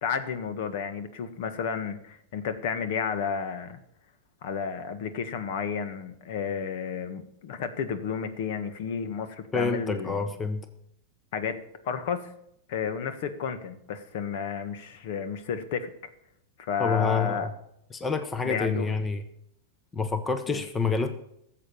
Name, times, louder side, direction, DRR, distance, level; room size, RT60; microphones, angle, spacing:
voice 1, 0.0-3.8 4.4-10.2 11.3-12.3 12.7-15.9 16.6-17.5 18.4-18.9 20.5-20.6, left 6 dB, 60° left, 11 dB, 1.5 m, -32 dB
voice 2, 9.5-10.7 16.8-17.5 17.9-19.2 19.9-21.2, left 4 dB, 15° left, 9 dB, 0.9 m, -28 dB
13.5 x 7.5 x 6.9 m, 0.75 s
supercardioid pair, 145°, 0 cm